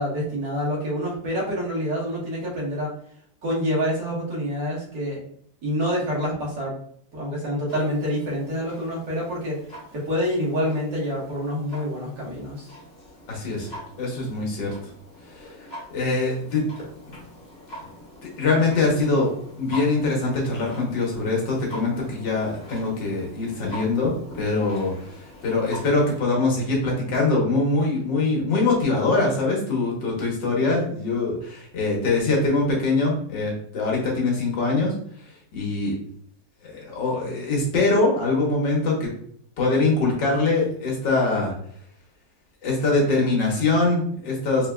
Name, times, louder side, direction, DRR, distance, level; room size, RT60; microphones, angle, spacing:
voice 1, 0.0-2.9 3.4-5.2 5.6-6.8 7.1-9.6 9.9-12.7, equal, 70° right, -5 dB, 2.0 m, -27 dB
Clock, 7.7-26.2, left 1 dB, 35° left, 1.8 m, -44 dB
voice 2, 13.3-13.7 14.0-14.7 15.3-15.5 15.9-16.7 17.1-17.2 18.2-19.3 19.6-34.9 35.5-36.0 36.6-39.1 39.6-41.5 42.6-44.7, left 3 dB, 75° left, -2 dB, 1.8 m, -23 dB
4.6 x 2.9 x 2.3 m, 0.64 s
omnidirectional pair, 2.0 m